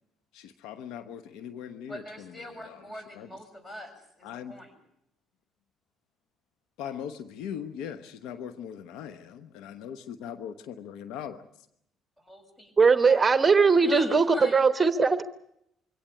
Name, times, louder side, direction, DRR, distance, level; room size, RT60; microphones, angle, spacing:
voice 1, 0.3-2.8 3.1-3.3 4.2-4.5 6.8-11.7, left 8 dB, 75° left, 11 dB, 1.0 m, -40 dB
voice 2, 1.9-4.7 12.2-12.7 13.0-13.3 13.7-14.6, equal, 25° left, 7 dB, 7.3 m, -42 dB
voice 3, 12.8-14.2 14.5-15.2, right 5 dB, 30° right, 11 dB, 1.1 m, -20 dB
23.5 x 17.5 x 8.6 m, 0.77 s
hypercardioid pair, 60°, 0 cm